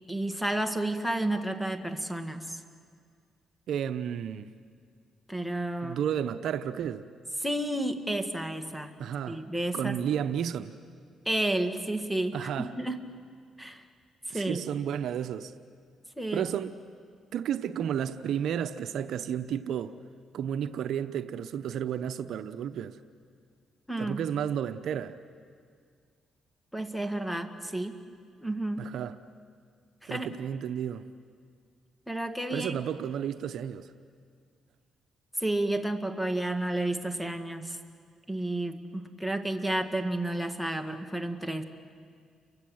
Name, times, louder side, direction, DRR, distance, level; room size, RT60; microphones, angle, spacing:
voice 1, 0.1-2.6 5.3-6.0 7.4-9.0 9.3-10.0 11.3-13.0 13.6-13.8 14.3-14.6 16.2-16.5 23.9-24.2 26.7-28.0 28.4-28.9 30.0-30.3 32.1-32.8 35.4-37.8 38.3-41.6, right 1 dB, ahead, 8 dB, 2.0 m, -31 dB
voice 2, 3.7-4.5 5.8-7.0 9.0-9.4 9.7-10.7 12.3-12.7 14.3-15.5 16.3-16.7 17.3-19.9 20.3-23.0 24.0-25.2 28.8-29.1 30.1-31.0 32.5-33.9, right 9 dB, 75° right, 10 dB, 0.8 m, -32 dB
30.0 x 24.5 x 7.9 m, 2.1 s
cardioid pair, 90°, 0 cm